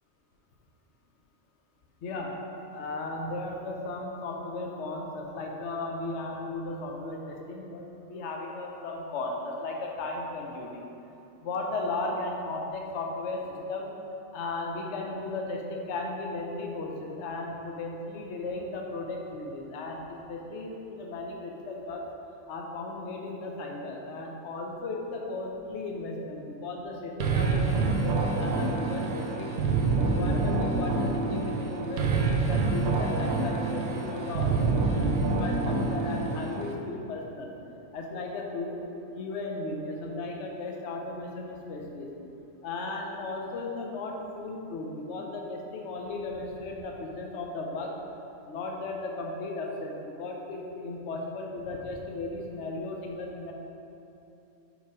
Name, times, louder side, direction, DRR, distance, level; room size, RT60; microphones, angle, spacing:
voice 1, 2.0-2.3 2.7-10.9 11.4-14.0 14.3-22.0 22.5-29.6 30.0-37.6 37.9-42.1 42.6-47.9 48.5-53.5, left 2 dB, 60° left, 0 dB, 1.0 m, -36 dB
sound 1, 27.2-36.7, right 3 dB, 85° right, 1.1 m, -27 dB
5.1 x 5.0 x 4.7 m, 2.8 s
omnidirectional pair, 1.4 m